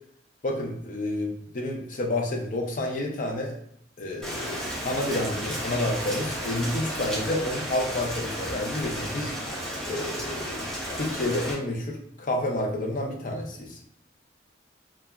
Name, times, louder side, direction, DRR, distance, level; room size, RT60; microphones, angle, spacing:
voice 1, 0.4-3.5 4.0-9.3 9.8-10.7 10.9-13.8, left 1 dB, 45° left, 1 dB, 0.5 m, -29 dB
Rain, 4.2-11.5, equal, 5° left, 0.6 m, -33 dB
2.8 x 2.3 x 2.3 m, 0.68 s
head